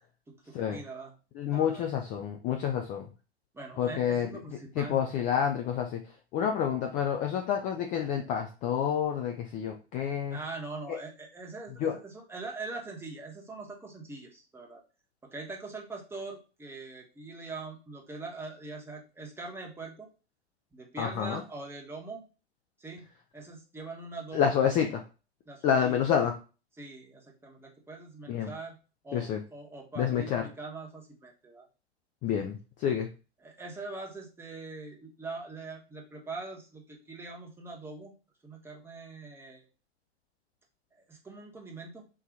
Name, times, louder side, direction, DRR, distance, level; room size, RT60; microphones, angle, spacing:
voice 1, 0.3-1.1 1.5-1.8 3.5-5.0 10.3-14.8 15.2-20.1 20.7-22.2 22.8-23.0 23.3-24.5 25.5-26.3 26.8-28.8 29.0-31.7 32.3-32.4 33.4-38.1 38.4-39.6 41.0-42.1, right 3 dB, 5° right, -1 dB, 1.0 m, -43 dB
voice 2, 1.4-3.1 3.8-4.3 4.8-6.0 6.3-10.4 11.8-12.0 21.0-21.4 24.3-25.0 25.6-26.3 28.3-28.5 29.1-29.4 30.0-30.4 32.2-33.1, left 8 dB, 25° left, 4 dB, 0.4 m, -28 dB
3.8 x 2.7 x 4.6 m, 0.34 s
figure-of-eight pair, 100°, 34 cm